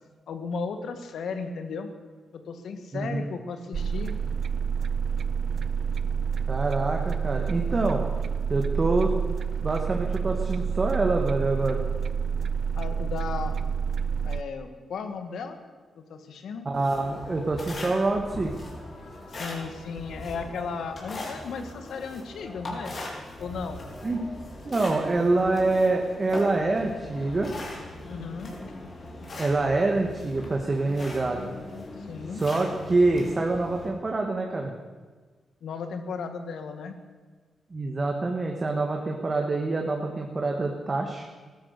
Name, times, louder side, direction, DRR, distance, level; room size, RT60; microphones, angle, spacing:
voice 1, 0.3-1.9 2.3-4.1 12.7-13.6 14.2-15.6 15.9-16.7 19.3-23.0 23.4-23.9 28.0-28.5 32.0-32.4 35.6-36.9, left 5 dB, 80° left, 8 dB, 1.6 m, -35 dB
voice 2, 2.9-3.3 6.5-8.0 8.5-9.1 9.6-11.8 16.7-18.5 24.0-24.2 24.6-27.5 29.4-31.4 32.3-34.7 37.7-41.2, right 2 dB, 35° right, 2 dB, 1.8 m, -26 dB
sound 1, 3.7-14.4, right 6 dB, 65° right, 0.4 m, -28 dB
sound 2, 16.7-33.9, left 2 dB, 50° left, 4.3 m, -40 dB
15.0 x 12.5 x 6.7 m, 1.4 s
cardioid pair, 65°, 0 cm